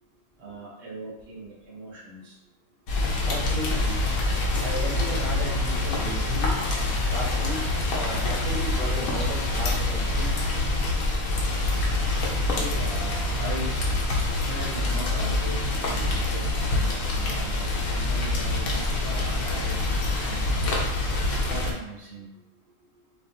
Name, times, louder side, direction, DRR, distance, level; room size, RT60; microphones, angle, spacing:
voice 1, 0.4-2.4 12.5-13.7 14.4-19.7 20.2-20.8 21.5-22.3, right 1 dB, 50° right, -6 dB, 1.7 m, -39 dB
Rain, 2.9-21.7, left 2 dB, 80° left, 1.4 m, -26 dB
voice 2, 3.2-4.0 4.6-6.6 7.1-7.6 7.9-10.3, right 1 dB, 85° right, -6 dB, 1.7 m, -34 dB
7.3 x 2.5 x 2.7 m, 1.0 s
omnidirectional pair, 1.5 m